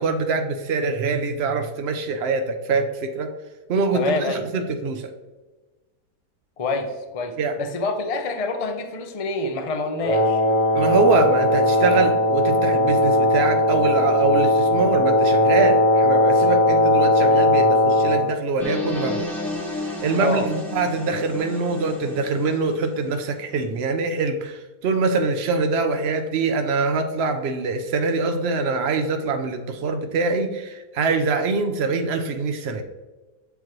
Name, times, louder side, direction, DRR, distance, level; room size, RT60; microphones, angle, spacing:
voice 1, 0.0-3.3 3.7-5.1 7.4-7.6 10.7-19.3 19.8-32.8, right 4 dB, 70° right, 6 dB, 0.6 m, -24 dB
voice 2, 3.9-4.4 6.6-10.4 20.2-20.5, left 3 dB, 70° left, 4 dB, 0.3 m, -26 dB
Wind instrument woodwind instrument, 10.0-18.3, left 1 dB, 30° left, 0.8 m, -18 dB
sound 1, 18.6-23.5, left 2 dB, ahead, 1.6 m, -32 dB
7.2 x 5.3 x 3.1 m, 1.2 s
omnidirectional pair, 1.8 m